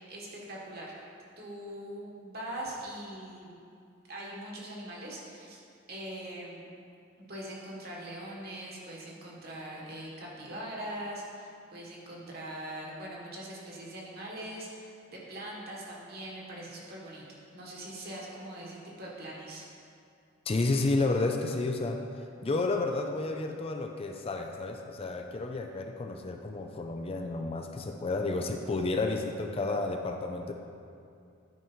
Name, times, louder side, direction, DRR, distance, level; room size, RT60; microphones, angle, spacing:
voice 1, 0.1-1.0 1.4-3.6 4.1-5.6 5.9-6.6 7.2-19.7, right 1 dB, 50° right, -4 dB, 1.7 m, -42 dB
voice 2, 20.5-22.0 22.4-30.5, left 3 dB, 30° left, 4 dB, 0.4 m, -31 dB
10.5 x 5.0 x 4.5 m, 2.5 s
head